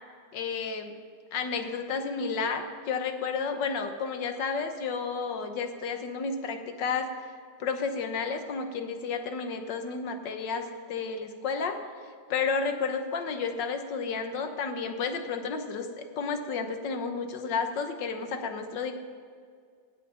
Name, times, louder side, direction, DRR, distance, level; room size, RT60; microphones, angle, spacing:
voice 1, 0.3-0.9 1.3-7.1 7.6-11.8 12.3-18.9, left 5 dB, 70° left, 7 dB, 1.7 m, -31 dB
17.5 x 8.3 x 5.6 m, 2.1 s
omnidirectional pair, 2.0 m